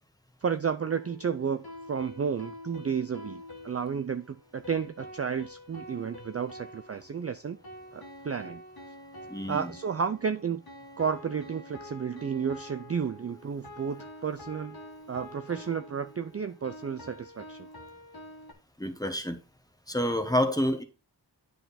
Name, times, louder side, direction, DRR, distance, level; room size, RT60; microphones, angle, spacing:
voice 1, 0.4-7.6 7.9-8.6 9.5-10.6 11.0-14.8 15.1-17.7, right 6 dB, 35° right, 0.4 m, -32 dB
sound 1, 0.8-18.5, left 1 dB, 55° left, 1.7 m, -47 dB
voice 2, 9.3-9.7 18.8-19.4 19.9-20.8, equal, 10° left, 1.2 m, -28 dB
9.1 x 4.0 x 4.2 m
wide cardioid pair, 75°, 43 cm